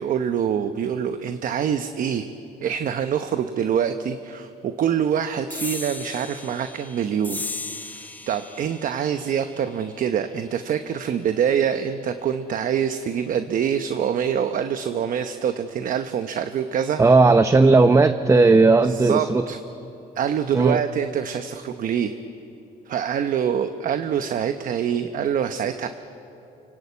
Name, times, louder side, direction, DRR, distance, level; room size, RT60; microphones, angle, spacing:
voice 1, 0.0-2.3 2.6-7.4 7.8-17.0 18.8-19.6 20.2-22.1 22.9-25.9, right 8 dB, 55° right, 9 dB, 0.9 m, -25 dB
sound 1, 5.5-12.3, left 3 dB, 10° left, 1.2 m, -38 dB
voice 2, 17.0-19.4 20.5-20.8, right 3 dB, 15° right, 9 dB, 0.8 m, -16 dB
29.0 x 18.5 x 8.5 m, 2.9 s
cardioid pair, 110°, 17 cm